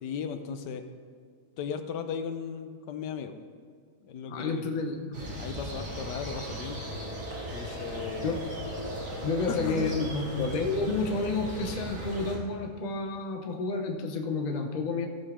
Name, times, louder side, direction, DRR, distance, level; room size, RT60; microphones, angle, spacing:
voice 1, 0.0-0.8 1.6-3.3 4.0-4.6 5.4-6.8 7.5-8.3 9.5-9.9, left 7 dB, 85° left, 8 dB, 1.4 m, -36 dB
voice 2, 4.3-5.2 8.2-8.4 9.2-15.1, left 3 dB, 35° left, 4 dB, 0.7 m, -30 dB
sound 1, 5.1-12.3, equal, 70° right, 2.8 m, -37 dB
14.5 x 5.5 x 4.9 m, 2.1 s
omnidirectional pair, 1.8 m